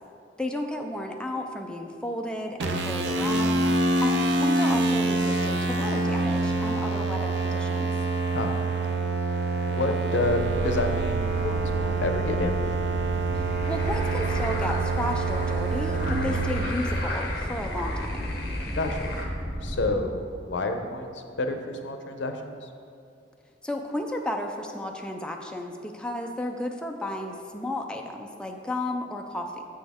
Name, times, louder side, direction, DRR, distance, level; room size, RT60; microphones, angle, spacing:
voice 1, 0.4-3.7 4.0-7.9 13.3-18.3 23.6-29.6, left 1 dB, 5° left, 2 dB, 0.4 m, -33 dB
sound 1, 2.6-16.7, right 3 dB, 65° right, 0.6 m, -26 dB
voice 2, 8.8-9.2 9.7-12.6 16.2-16.4 18.7-19.2 19.6-22.7, left 2 dB, 80° left, 5 dB, 0.6 m, -30 dB
sound 2, 10.2-20.0, equal, 85° right, 1.6 m, -33 dB
sound 3, 13.4-19.3, left 2 dB, 55° left, 1.0 m, -37 dB
7.6 x 6.3 x 3.5 m, 2.6 s
head